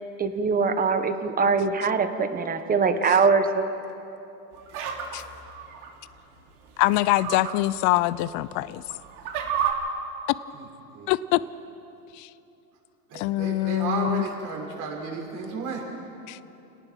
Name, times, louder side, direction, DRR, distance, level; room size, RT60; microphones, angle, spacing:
voice 1, 0.2-3.7, right 4 dB, 20° right, 9 dB, 1.5 m, -22 dB
sound 1, 4.5-5.9 6.8-7.5 8.0-8.1 8.7-9.7, right 9 dB, 65° right, 3.8 m, -30 dB
voice 2, 6.8-8.8 11.1-11.4 12.2-12.3 13.1-14.3 16.3-16.4, left 17 dB, 40° left, 17 dB, 0.6 m, -24 dB
voice 3, 13.1-15.8, right 4 dB, 40° right, -1 dB, 6.2 m, -32 dB
28.5 x 18.5 x 6.2 m, 2.8 s
hypercardioid pair, 120°, 48 cm